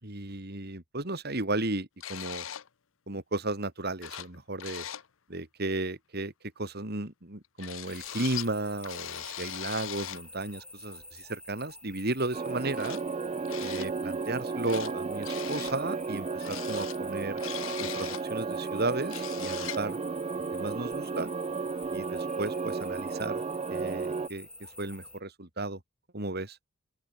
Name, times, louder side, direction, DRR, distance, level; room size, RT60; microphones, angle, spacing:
voice 1, 0.0-2.4 3.1-4.9 5.3-13.0 13.6-17.4 17.8-20.0 20.5-21.3 21.9-23.4 23.7-25.8 26.1-26.6, right 2 dB, 50° right, 3.1 m, -34 dB
sound 1, 2.0-2.7 3.7-3.8 4.0-4.3 4.6-5.1 7.6-8.5 8.8-10.2 11.7-11.8 12.8-13.0 13.4-13.9 14.2-14.9 15.2-15.8 16.4-18.3 18.7-18.8 19.0-19.9, left 11 dB, 80° left, 0.8 m, -39 dB
sound 2, 7.9-25.2, left 1 dB, 5° left, 7.8 m, -49 dB
sound 3, 12.3-24.3, right 4 dB, 30° right, 0.3 m, -34 dB
open air
head